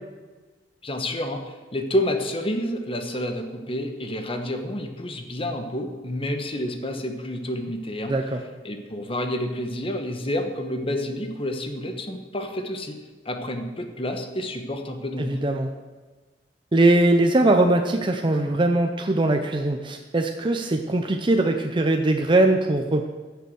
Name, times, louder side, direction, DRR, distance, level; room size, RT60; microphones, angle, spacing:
voice 1, 0.8-8.1 8.6-13.0 13.2-15.4, left 1 dB, 30° left, 5 dB, 1.3 m, -29 dB
voice 2, 8.1-8.4 15.2-15.7 16.7-23.1, right 2 dB, 30° right, 4 dB, 0.7 m, -21 dB
14.5 x 6.9 x 6.4 m, 1.3 s
head